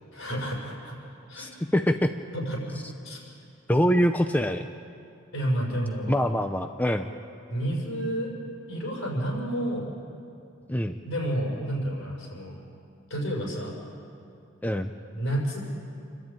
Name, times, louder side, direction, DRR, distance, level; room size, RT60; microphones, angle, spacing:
voice 1, 0.1-1.0 1.3-1.5 2.3-3.2 5.3-6.2 7.5-8.3 8.7-9.9 11.0-12.6 13.1-13.7 15.1-15.6, right 1 dB, 65° left, -2 dB, 6.4 m, -30 dB
voice 2, 1.4-2.1 3.7-4.7 6.1-7.1 10.7-11.0 14.6-14.9, equal, 10° left, 7 dB, 0.5 m, -24 dB
28.0 x 12.5 x 9.0 m, 2.6 s
head